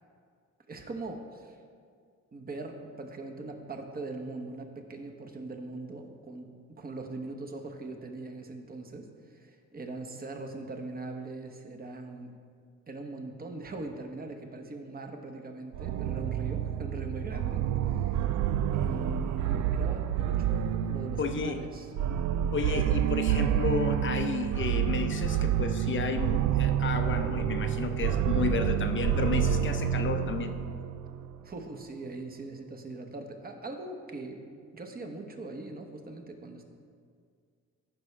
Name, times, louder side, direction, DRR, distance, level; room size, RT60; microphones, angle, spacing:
voice 1, 0.7-1.6 2.3-12.3 12.9-18.3 18.7-21.9 31.4-34.4 34.7-36.6, right 2 dB, 30° right, 4 dB, 1.1 m, -41 dB
sound 1, 15.7-31.4, right 10 dB, 70° right, 0.4 m, -28 dB
voice 2, 21.2-21.6 22.5-30.5, left 5 dB, 40° left, 7 dB, 0.7 m, -32 dB
14.5 x 5.5 x 3.3 m, 2.1 s
cardioid pair, 90°, 30 cm